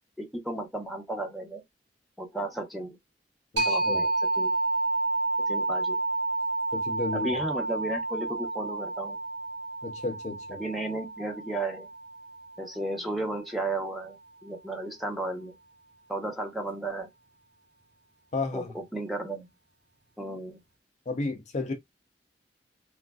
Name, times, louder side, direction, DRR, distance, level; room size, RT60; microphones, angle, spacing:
voice 1, 0.2-1.6 2.2-3.0 3.6-4.5 5.4-6.0 7.1-9.2 10.5-11.9 12.6-15.6 16.1-17.1 18.5-19.5 20.2-20.6, right 2 dB, ahead, 0.7 m, -34 dB
voice 2, 3.5-4.0 6.7-7.3 9.8-10.6 18.3-18.7 21.1-21.7, left 3 dB, 40° left, 0.4 m, -32 dB
sound 1, 3.6-13.0, right 2 dB, 70° right, 1.3 m, -30 dB
3.0 x 2.4 x 2.2 m
head